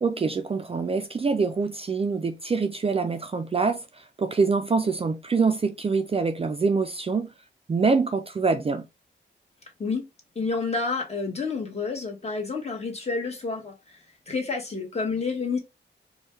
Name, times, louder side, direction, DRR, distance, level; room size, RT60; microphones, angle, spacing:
voice 1, 0.0-3.8 4.2-7.3 7.7-8.8, right 4 dB, 30° right, 0.4 m, -25 dB
voice 2, 10.3-14.0 14.3-15.6, left 4 dB, 35° left, 1.3 m, -29 dB
4.4 x 2.3 x 3.2 m
wide cardioid pair, 120°, 20 cm